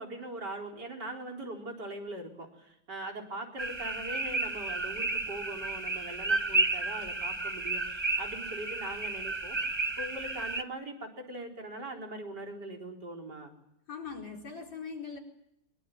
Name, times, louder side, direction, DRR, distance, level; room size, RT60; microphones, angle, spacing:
voice 1, 0.0-13.6, right 1 dB, 50° right, 1 dB, 4.7 m, -41 dB
sound 1, 3.6-10.6, right 3 dB, 20° right, 0.8 m, -32 dB
voice 2, 13.9-15.2, left 5 dB, 60° left, 2 dB, 5.1 m, -41 dB
23.5 x 22.5 x 9.2 m, 0.79 s
omnidirectional pair, 2.3 m